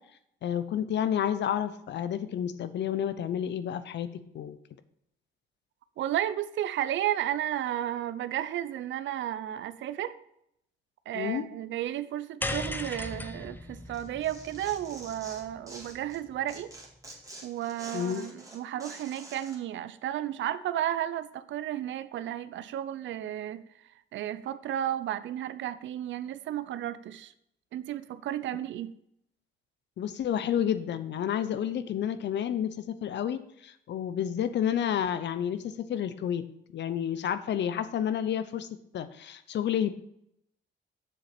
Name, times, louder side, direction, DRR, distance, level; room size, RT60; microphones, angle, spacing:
voice 1, 0.4-4.6 11.1-11.4 17.9-18.3 30.0-36.4 36.7-38.7 38.9-39.9, left 9 dB, 60° left, 13 dB, 0.7 m, -30 dB
voice 2, 6.0-10.1 11.1-16.7 17.4-23.7 24.1-27.3 27.7-28.9, right 11 dB, 70° right, 15 dB, 0.6 m, -33 dB
sound 1, 12.4-16.8, left 1 dB, 10° left, 0.7 m, -38 dB
Tearing, 13.9-16.2 16.5-19.6, right 2 dB, 15° right, 2.1 m, -47 dB
7.5 x 6.7 x 4.3 m, 0.75 s
cardioid pair, 90°, 20 cm